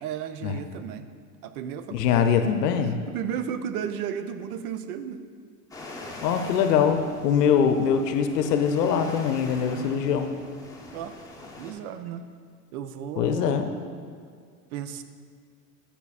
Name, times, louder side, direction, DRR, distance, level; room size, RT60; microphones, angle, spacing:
voice 1, 0.0-1.1 1.4-2.5 2.8-5.2 10.9-11.2 11.6-12.3 12.7-13.9 14.7-15.0, right 8 dB, 60° right, 10 dB, 0.7 m, -34 dB
voice 2, 1.9-3.0 6.2-10.3 13.2-13.7, left 7 dB, 75° left, 7 dB, 0.7 m, -23 dB
sound 1, 5.7-11.7, left 2 dB, 5° left, 0.9 m, -43 dB
12.0 x 5.7 x 2.4 m, 2.1 s
hypercardioid pair, 95°, 49 cm